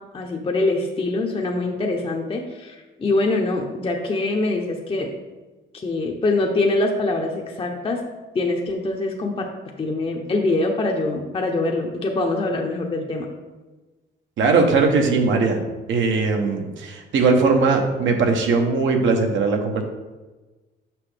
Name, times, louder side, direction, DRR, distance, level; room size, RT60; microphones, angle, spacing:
voice 1, 0.1-5.1 5.7-8.0 8.3-9.5 9.8-13.3, left 2 dB, 30° left, 1 dB, 0.7 m, -24 dB
voice 2, 14.4-15.6 15.9-19.8, right 4 dB, 75° right, 3 dB, 1.0 m, -19 dB
5.8 x 5.5 x 3.3 m, 1.2 s
cardioid pair, 90°, 20 cm